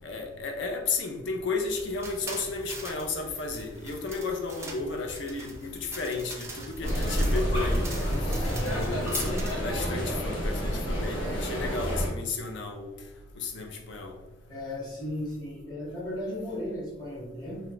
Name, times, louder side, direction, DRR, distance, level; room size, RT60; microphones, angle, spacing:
voice 1, 0.0-8.0 8.2-13.0 13.3-14.2, left 3 dB, 65° left, 0.5 m, -33 dB
sound 1, 1.7-9.5, right 3 dB, 15° right, 0.4 m, -42 dB
sound 2, 6.8-12.1, equal, 90° left, 0.8 m, -28 dB
voice 2, 8.1-8.9 14.5-17.6, left 1 dB, 15° left, 1.0 m, -36 dB
2.8 x 2.2 x 3.8 m
head